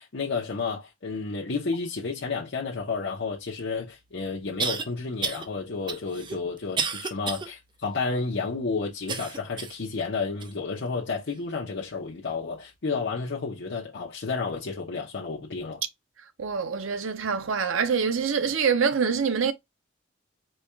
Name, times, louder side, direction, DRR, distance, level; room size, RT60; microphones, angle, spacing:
voice 1, 0.0-15.8, left 4 dB, 60° left, 0.8 m, -31 dB
sound 1, 3.6-3.7 4.6-4.8 5.2-5.5 5.9-7.5 7.9-8.0 9.1-9.8 10.4-10.5 11.3-11.4, right 5 dB, 25° right, 0.4 m, -31 dB
voice 2, 16.4-19.5, right 6 dB, 80° right, 0.6 m, -25 dB
4.2 x 2.3 x 3.2 m
head